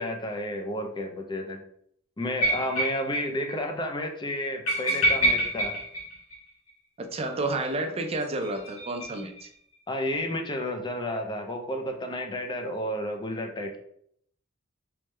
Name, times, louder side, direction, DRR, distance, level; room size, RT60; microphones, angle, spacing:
voice 1, 0.0-1.6 2.2-5.8 9.9-13.8, left 1 dB, 20° left, 4 dB, 0.5 m, -31 dB
sound 1, 2.4-3.2 3.5-3.6 3.9-4.0 4.7-6.7 8.2-9.5, right 1 dB, 85° left, 1.3 m, -27 dB
voice 2, 7.0-9.5, right 2 dB, 30° right, 5 dB, 0.5 m, -30 dB
3.5 x 3.2 x 3.1 m, 0.68 s
head